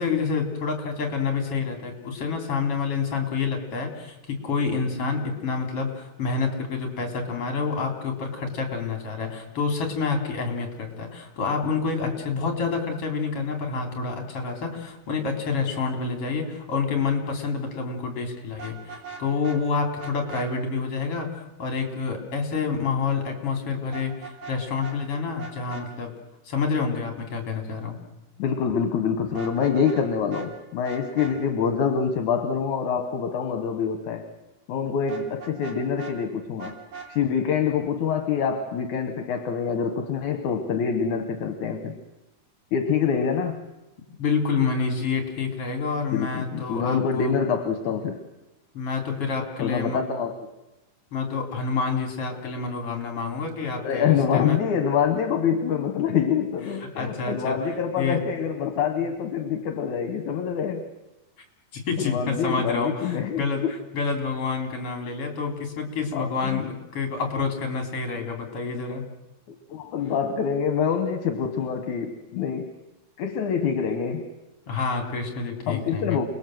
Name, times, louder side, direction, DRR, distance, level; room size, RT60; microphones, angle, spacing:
voice 1, 0.0-26.1 26.5-28.0 44.2-47.3 48.7-50.0 51.1-54.6 56.8-58.2 61.7-69.0 74.7-76.3, left 5 dB, 45° left, 3 dB, 4.2 m, -28 dB
Vehicle horn car horn honking, 18.5-19.6 20.0-20.5 23.9-24.6 24.8-25.0 25.4-25.8 29.2-30.0 30.3-30.5 30.8-31.3 35.1-36.1 36.6-37.1, right 6 dB, 75° right, 4.7 m, -39 dB
voice 2, 28.4-34.3 34.7-36.8 37.1-42.0 42.7-43.7 46.1-48.2 49.6-50.5 53.8-60.9 62.0-63.7 66.1-66.6 69.7-72.7 73.2-74.3 75.7-76.2, left 7 dB, 70° left, 6 dB, 2.7 m, -26 dB
28.5 x 20.5 x 7.8 m, 1.0 s
omnidirectional pair, 3.7 m